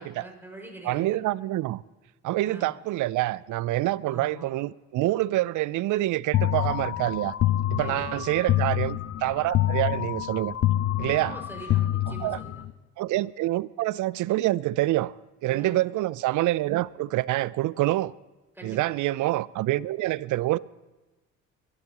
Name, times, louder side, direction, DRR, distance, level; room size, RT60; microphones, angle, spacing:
voice 1, 0.0-1.2 2.4-2.7 4.0-4.5 7.8-8.4 11.0-12.6 15.5-15.8 18.5-18.8, right 1 dB, 5° right, 5.7 m, -44 dB
voice 2, 0.8-1.8 2.2-7.3 7.7-10.5 11.0-11.4 12.1-12.4 13.0-15.1 15.4-18.1 18.6-20.6, right 16 dB, 60° right, 0.5 m, -26 dB
sound 1, 6.3-12.7, left 13 dB, 45° left, 0.6 m, -27 dB
22.5 x 13.5 x 3.0 m
hypercardioid pair, 60°, 34 cm